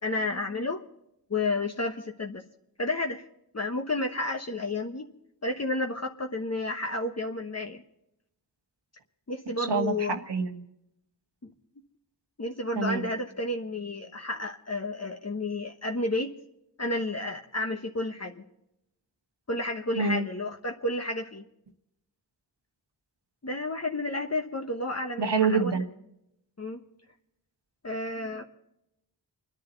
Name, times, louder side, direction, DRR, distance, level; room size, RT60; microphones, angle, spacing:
voice 1, 0.0-0.8 1.3-2.4 2.8-3.3 3.5-5.1 5.4-7.8 9.3-10.1 11.4-11.5 12.4-16.3 16.8-18.4 19.5-21.4 23.4-25.8 26.6-26.8 27.8-28.4, left 2 dB, 40° left, 3 dB, 1.2 m, -31 dB
voice 2, 9.6-10.6 12.7-13.0 20.0-20.3 25.2-25.8, right 4 dB, 85° right, 5 dB, 1.5 m, -26 dB
29.5 x 10.5 x 4.0 m, 0.83 s
wide cardioid pair, 55°, 41 cm